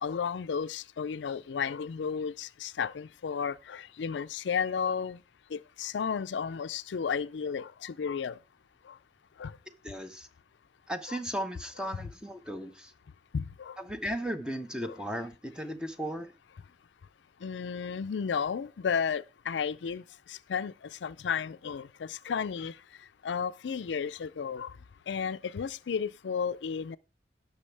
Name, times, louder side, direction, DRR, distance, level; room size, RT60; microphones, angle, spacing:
voice 1, 0.0-5.2 5.5-8.3 9.4-9.5 11.1-11.2 11.8-11.9 13.3-13.8 14.8-15.0 17.4-20.0 20.3-20.7 21.0-22.7 23.2-24.7 25.1-27.0, left 6 dB, 85° left, 0.4 m, -33 dB
voice 2, 9.8-10.3 10.9-12.9 13.8-16.3, equal, 5° right, 0.8 m, -36 dB
17.0 x 6.1 x 3.3 m
head